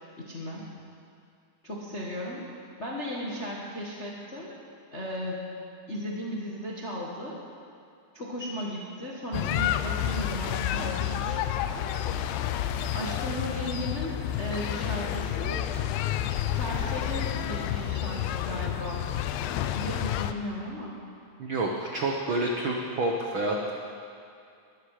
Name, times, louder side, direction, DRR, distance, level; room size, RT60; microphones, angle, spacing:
voice 1, 0.2-0.6 1.6-4.5 4.9-5.4 5.9-7.4 8.1-11.4 12.9-15.6 16.5-19.0 19.7-21.1, equal, 45° left, -4 dB, 0.9 m, -35 dB
sound 1, 9.3-20.3, left 11 dB, 80° left, 2.4 m, -30 dB
voice 2, 21.4-23.7, right 2 dB, 75° right, 0 dB, 1.1 m, -28 dB
20.5 x 13.5 x 5.0 m, 2.5 s
omnidirectional pair, 4.1 m